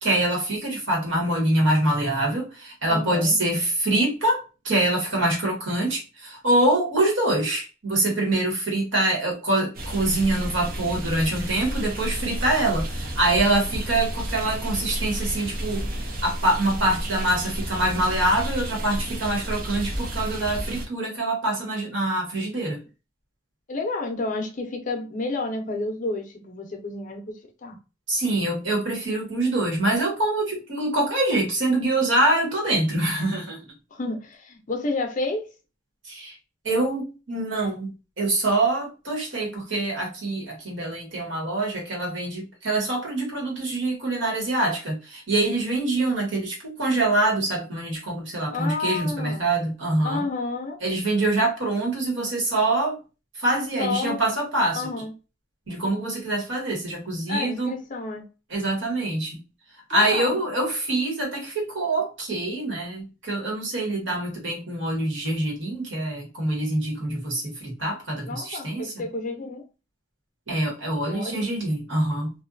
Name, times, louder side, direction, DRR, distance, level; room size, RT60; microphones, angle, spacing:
voice 1, 0.0-22.8 28.1-33.6 36.0-36.4 36.6-37.9 38.2-50.2 50.8-53.0 53.3-54.9 55.7-57.7 58.5-59.4 59.9-69.0 70.5-72.3, right 2 dB, 70° right, 1.2 m, -25 dB
voice 2, 2.9-3.4 23.7-27.8 33.9-35.5 48.5-49.5 50.0-50.8 53.8-54.2 54.7-55.1 57.3-58.2 59.9-60.4 68.2-69.6 71.0-71.4, left 3 dB, 45° left, 0.6 m, -30 dB
sound 1, 9.7-20.9, right 1 dB, 50° right, 0.6 m, -31 dB
2.5 x 2.2 x 2.3 m
head